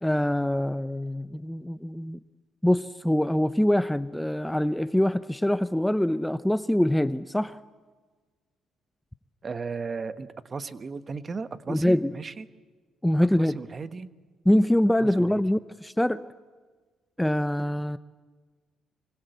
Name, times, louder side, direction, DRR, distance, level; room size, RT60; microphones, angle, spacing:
voice 1, 0.0-2.2 2.6-7.6 11.7-12.1 13.0-13.6 14.4-16.2 17.2-18.0, left 1 dB, 5° left, 14 dB, 0.7 m, -24 dB
voice 2, 9.4-12.4 13.4-14.1 15.0-15.4, right 4 dB, 40° right, 12 dB, 1.4 m, -35 dB
25.5 x 24.5 x 8.0 m, 1.4 s
cardioid pair, 75°, 0 cm